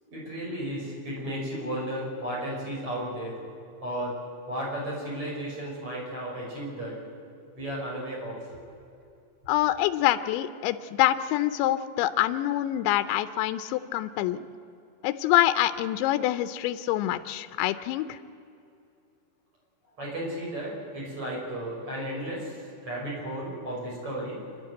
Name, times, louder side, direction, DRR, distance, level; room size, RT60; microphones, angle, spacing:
voice 1, 0.1-3.4 3.8-4.2 4.5-7.0 7.6-8.6 20.0-24.4, right 1 dB, 30° right, -2 dB, 5.9 m, -34 dB
voice 2, 9.5-14.4 15.0-18.2, left 14 dB, 80° left, 11 dB, 2.8 m, -26 dB
26.5 x 11.5 x 9.1 m, 2.6 s
omnidirectional pair, 5.5 m